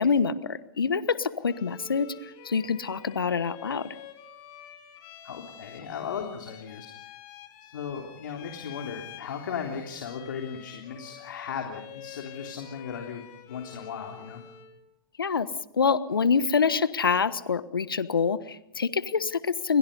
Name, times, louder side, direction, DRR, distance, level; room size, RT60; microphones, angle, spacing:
voice 1, 0.0-2.1 2.4-3.9 15.2-15.5 15.7-19.8, left 5 dB, 80° left, 14 dB, 1.4 m, -26 dB
Bowed string instrument, 1.4-14.8, left 10 dB, 40° left, 4.0 m, -48 dB
voice 2, 5.2-6.9 7.6-13.2 13.5-14.4, left 7 dB, 65° left, 2 dB, 3.4 m, -36 dB
29.0 x 22.5 x 5.5 m, 0.82 s
figure-of-eight pair, 110°, 12 cm